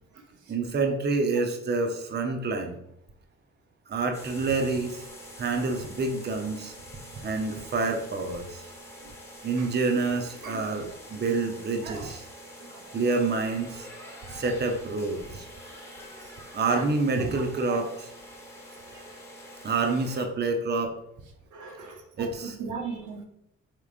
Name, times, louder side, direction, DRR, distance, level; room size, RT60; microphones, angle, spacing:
voice 1, 0.5-2.8 3.9-5.0 5.4-6.7 7.2-8.6 9.4-12.3 12.9-13.9 14.3-15.5 16.5-18.1 19.6-20.9 22.2-22.8, right 3 dB, 35° right, 4 dB, 0.7 m, -28 dB
sound 1, 4.1-20.3, equal, 10° left, 1.3 m, -46 dB
voice 2, 12.6-12.9 16.7-16.9 17.2-17.3 17.7-17.8 18.9-19.0 21.5-23.2, right 4 dB, 75° right, 2 dB, 0.9 m, -37 dB
4.6 x 3.6 x 2.4 m, 0.80 s
supercardioid pair, 55°, 31 cm